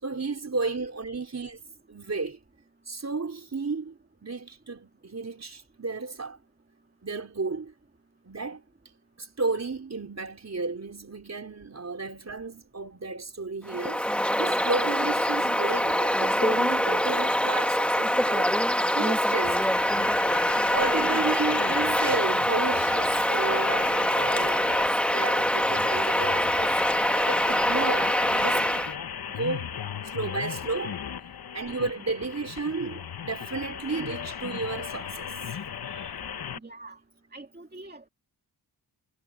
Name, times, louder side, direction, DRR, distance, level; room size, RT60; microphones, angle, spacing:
voice 1, 0.0-1.6 1.9-2.4 2.9-6.4 7.0-7.7 8.2-8.6 9.2-18.6 18.9-19.7 20.7-28.8 29.3-29.7 30.0-31.0 31.5-36.2, right 3 dB, 40° right, 4.5 m, -33 dB
Bird vocalization bird call bird song, 13.7-28.9, equal, 5° left, 1.2 m, -24 dB
sound 1, 19.4-36.6, left 8 dB, 60° left, 1.0 m, -37 dB
voice 2, 36.6-37.0 37.3-38.1, right 2 dB, 25° right, 2.4 m, -45 dB
wide cardioid pair, 90°, 41 cm